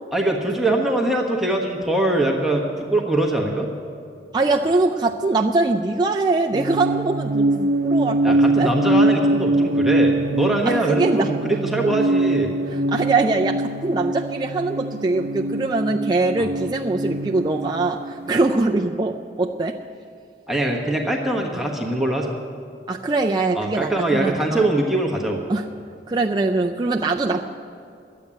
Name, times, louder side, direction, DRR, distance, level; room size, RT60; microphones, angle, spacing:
voice 1, 0.1-3.7 8.2-12.5 16.4-16.5 20.5-22.3 23.6-25.4, right 1 dB, ahead, -1 dB, 1.3 m, -22 dB
voice 2, 4.3-8.7 10.7-11.3 11.9-12.0 12.7-19.8 22.9-24.6 25.5-25.7 26.1-27.4, right 3 dB, 25° right, 1 dB, 0.4 m, -22 dB
sound 1, 6.5-18.5, right 2 dB, 70° right, 0.7 m, -23 dB
11.5 x 8.5 x 8.9 m, 2.4 s
head